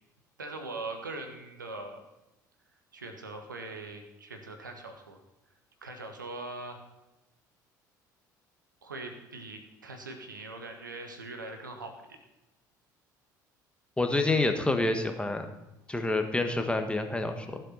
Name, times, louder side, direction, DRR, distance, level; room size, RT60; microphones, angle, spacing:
voice 1, 0.4-2.0 2.9-5.2 5.8-6.8 8.8-12.2, right 2 dB, 85° right, 5 dB, 1.5 m, -41 dB
voice 2, 14.0-15.5 15.9-17.6, left 2 dB, 10° left, 6 dB, 1.7 m, -28 dB
15.0 x 7.5 x 5.8 m, 0.95 s
figure-of-eight pair, 60°, 10 cm